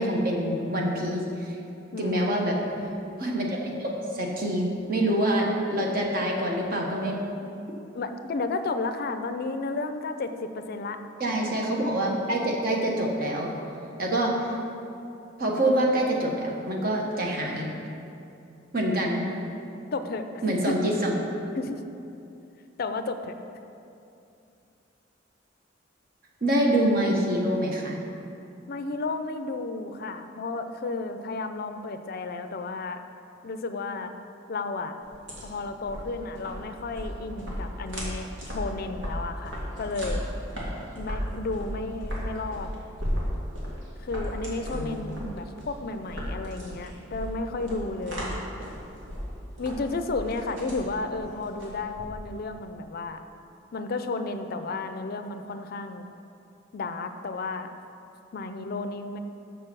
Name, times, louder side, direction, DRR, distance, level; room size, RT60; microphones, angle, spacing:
voice 1, 0.0-1.5 2.0-2.6 3.2-3.9 4.1-7.4 11.2-13.5 14.0-14.4 15.4-17.7 18.7-19.2 20.4-21.1 26.4-28.0 44.7-45.0, right 1 dB, 50° right, 0 dB, 1.2 m, -26 dB
voice 2, 1.9-2.4 5.8-6.0 7.9-11.0 19.9-20.8 21.6-21.8 22.8-23.4 28.7-33.0 33.4-34.1 34.5-35.0 35.4-40.2 41.0-42.7 44.0-48.4 49.6-53.2 53.7-56.1 56.7-57.7 58.3-59.2, left 3 dB, 55° left, 8 dB, 0.5 m, -32 dB
sound 1, 35.0-52.5, equal, 75° right, 2.1 m, -35 dB
6.7 x 6.5 x 6.1 m, 2.6 s
head